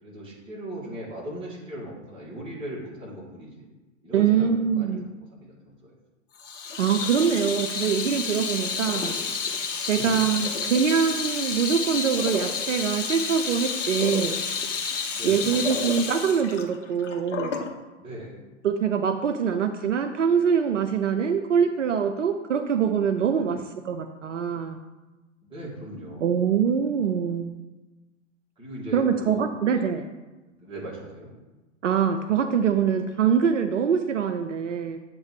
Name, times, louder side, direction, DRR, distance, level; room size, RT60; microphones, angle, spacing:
voice 1, 0.0-3.7 4.0-5.0 5.3-5.9 9.8-10.3 15.1-15.6 18.0-18.4 23.4-23.6 25.4-26.3 28.6-29.8 30.6-31.3, right 1 dB, 15° right, -6 dB, 2.2 m, -38 dB
voice 2, 4.1-5.0 6.8-9.2 9.9-14.4 15.2-17.6 18.6-24.8 26.2-27.5 28.9-30.1 31.8-35.0, right 7 dB, 75° right, 7 dB, 0.6 m, -24 dB
Water tap faucet / Sink (filling or washing), 6.4-17.7, left 5 dB, 70° left, 0.9 m, -30 dB
7.9 x 3.0 x 6.1 m, 1.1 s
figure-of-eight pair, 100°, 38 cm